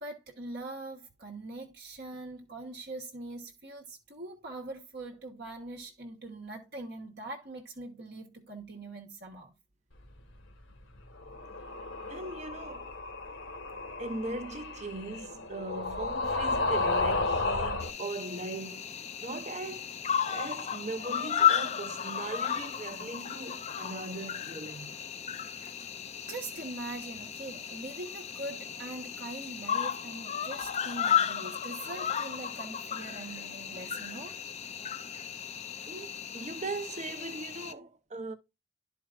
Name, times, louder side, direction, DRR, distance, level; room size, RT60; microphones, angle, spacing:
voice 1, 0.0-9.5 25.4-25.8 26.3-34.3, right 2 dB, 50° right, 1.2 m, -42 dB
sound 1, 11.2-17.9, left 3 dB, 65° left, 1.4 m, -33 dB
voice 2, 12.1-12.9 14.0-19.9 20.2-25.0 35.9-38.3, right 2 dB, 35° right, 0.7 m, -39 dB
Cricket, 17.8-37.7, left 9 dB, 30° left, 0.4 m, -34 dB
11.5 x 4.6 x 2.4 m
head